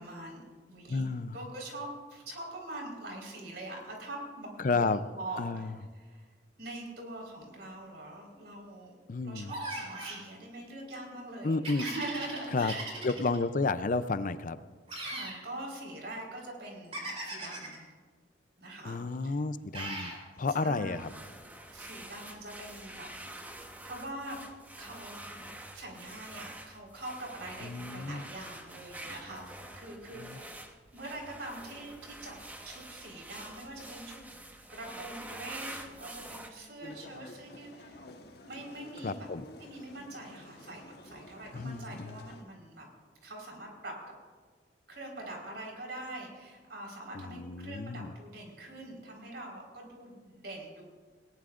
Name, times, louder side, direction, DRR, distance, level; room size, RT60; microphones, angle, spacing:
voice 1, 0.0-6.3 6.6-8.9 9.2-13.0 15.0-17.9 18.6-19.4 20.5-21.1 21.7-23.6 23.8-24.4 24.8-25.3 25.7-30.5 30.9-32.4 32.6-34.2 34.7-38.0 38.4-39.3 39.6-42.9 43.2-44.0 44.9-50.8, right 1 dB, 70° right, 0 dB, 4.5 m, -43 dB
voice 2, 0.9-1.3 4.6-5.0 5.4-5.7 9.1-9.6 11.4-11.9 12.5-12.7 13.0-14.6 18.8-21.1 27.6-28.2 30.1-30.4 39.0-39.5 41.5-42.2 47.1-48.1, left 3 dB, 50° left, 13 dB, 0.5 m, -31 dB
sound 1, 9.5-10.3 11.6-13.4 14.9-15.4 16.9-17.8 19.7-20.2, right 2 dB, 35° right, 4.1 m, -39 dB
sound 2, 20.9-36.5, right 1 dB, 10° right, 1.1 m, -47 dB
sound 3, 36.8-42.4, left 2 dB, 65° left, 1.4 m, -51 dB
19.5 x 18.0 x 2.5 m, 1.5 s
head